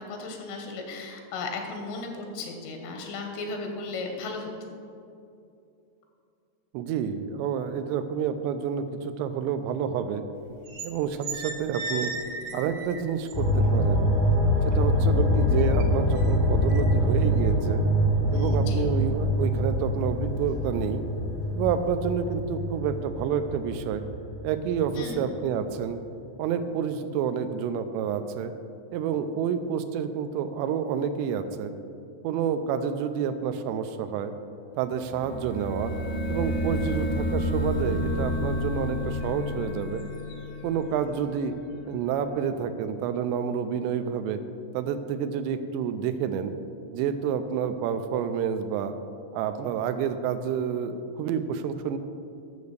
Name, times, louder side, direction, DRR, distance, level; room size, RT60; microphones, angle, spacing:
voice 1, 0.0-4.7 18.3-18.8 25.0-25.2, left 3 dB, 85° left, 3 dB, 3.6 m, -35 dB
voice 2, 6.7-10.2 10.8-12.1 12.5-14.1 14.7-17.8 18.3-21.0 21.5-24.0 24.4-26.0 26.4-28.5 28.9-31.7 32.2-34.3 34.8-35.9 36.3-40.0 40.6-41.5 41.9-44.4 44.7-46.6 46.9-49.0 49.3-52.0, right 7 dB, 85° right, 9 dB, 2.6 m, -29 dB
sound 1, 10.4-10.9 11.2-13.7 14.1-15.0 15.4-18.5 18.9-19.2 19.6-20.0 20.4-20.6, right 2 dB, 70° right, 3.2 m, -37 dB
sound 2, 13.3-25.0 25.3-25.4, equal, 10° left, 1.0 m, -24 dB
sound 3, 34.9-41.6, left 1 dB, 70° left, 1.9 m, -30 dB
9.3 x 7.0 x 6.5 m, 2.5 s
omnidirectional pair, 5.4 m